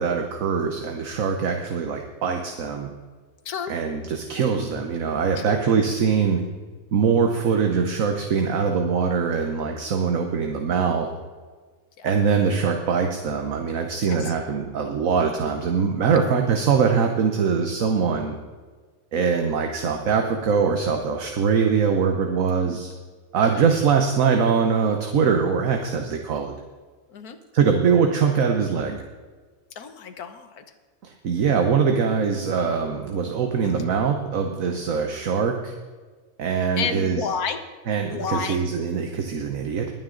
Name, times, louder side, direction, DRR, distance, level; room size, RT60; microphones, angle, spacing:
voice 1, 0.0-2.9 3.7-6.4 6.9-11.1 12.0-18.4 19.1-22.9 23.3-26.5 27.5-29.0 31.0-35.7 36.4-37.3 37.9-39.9, right 6 dB, 65° right, 4 dB, 1.4 m, -22 dB
voice 2, 29.8-30.6 36.8-37.6 38.1-38.6, left 6 dB, 90° left, 8 dB, 1.6 m, -30 dB
21.0 x 9.1 x 3.9 m, 1.4 s
omnidirectional pair, 1.5 m